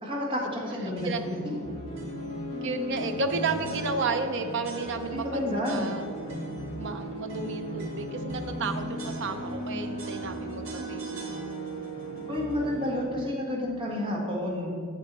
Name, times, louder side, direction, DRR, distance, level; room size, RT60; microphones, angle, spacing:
voice 1, 0.0-1.6 5.1-5.9 10.7-10.9 12.3-14.7, left 1 dB, 25° right, -2 dB, 1.6 m, -30 dB
voice 2, 0.8-1.2 2.6-6.1 6.8-11.0, right 4 dB, 60° right, 7 dB, 0.6 m, -32 dB
sound 1, 1.0-13.0, right 1 dB, 35° left, 2.0 m, -37 dB
sound 2, 1.0-1.4 2.0-2.3 2.9-4.3 4.6-5.3 5.6-6.7 7.3-9.7 10.0-11.9, right 2 dB, 75° right, 1.9 m, -41 dB
8.3 x 7.0 x 4.0 m, 2.4 s
head